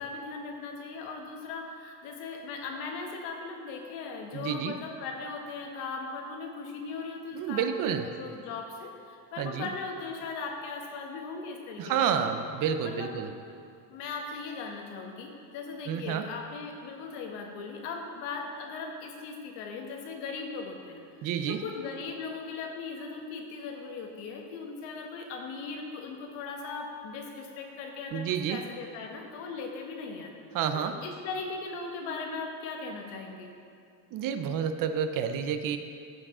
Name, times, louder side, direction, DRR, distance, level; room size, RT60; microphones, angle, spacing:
voice 1, 0.0-12.3 12.8-13.2 13.9-30.3 30.7-33.5, left 4 dB, 85° left, 2 dB, 1.3 m, -38 dB
voice 2, 4.3-4.7 7.3-8.1 9.4-9.7 11.8-13.3 15.9-16.2 21.2-21.6 28.1-28.6 30.5-30.9 34.1-35.8, right 8 dB, 45° right, 8 dB, 0.6 m, -29 dB
13.5 x 4.8 x 3.7 m, 2.5 s
cardioid pair, 140°, 44 cm